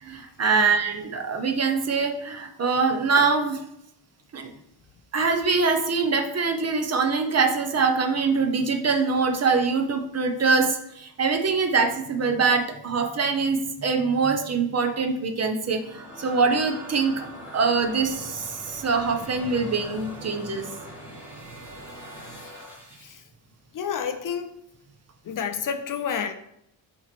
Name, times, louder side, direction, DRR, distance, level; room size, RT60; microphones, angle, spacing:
voice 1, 0.0-3.6 4.3-4.5 5.1-17.3 17.5-20.7, right 4 dB, 35° right, 5 dB, 0.7 m, -24 dB
sound 1, 15.5-23.3, right 1 dB, 5° right, 1.7 m, -42 dB
voice 2, 23.7-24.5 25.2-26.3, left 7 dB, 50° left, 8 dB, 0.6 m, -30 dB
7.0 x 3.1 x 5.9 m, 0.76 s
cardioid pair, 150°, 43 cm